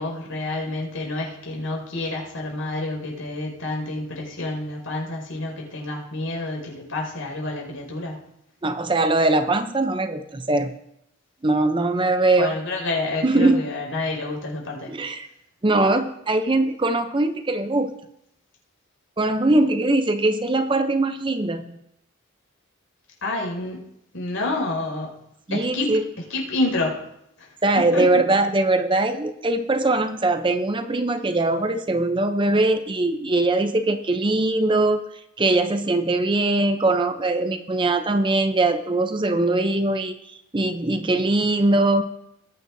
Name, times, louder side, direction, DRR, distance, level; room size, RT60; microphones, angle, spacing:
voice 1, 0.0-8.3 12.4-14.9 23.2-23.8 24.1-25.2 25.5-26.0 26.3-27.0 27.4-27.5 27.8-28.2, left 2 dB, 80° left, -1 dB, 5.3 m, -28 dB
voice 2, 8.6-10.7 11.4-12.5 13.2-13.6 14.9-15.3 15.6-17.9 19.2-21.7 25.5-26.0 27.6-35.0 35.4-40.1 40.5-42.0, right 2 dB, 25° right, 8 dB, 0.6 m, -21 dB
20.0 x 9.2 x 2.7 m, 0.80 s
head